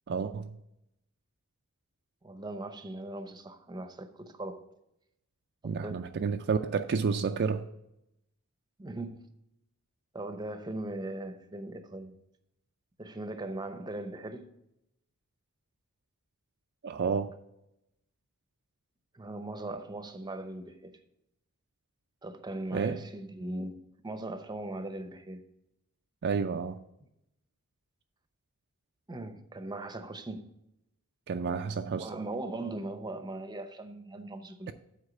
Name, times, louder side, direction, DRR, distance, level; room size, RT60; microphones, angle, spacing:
voice 1, 0.1-0.6 5.6-7.6 16.8-17.3 22.7-23.0 26.2-26.8 31.3-32.1, right 5 dB, 50° right, 0.4 m, -30 dB
voice 2, 2.2-4.7 5.6-6.1 8.8-9.3 10.1-12.2 13.0-14.5 19.1-20.9 22.2-25.5 29.1-30.5 32.0-34.7, right 2 dB, 20° right, 0.7 m, -39 dB
8.0 x 4.5 x 6.8 m
head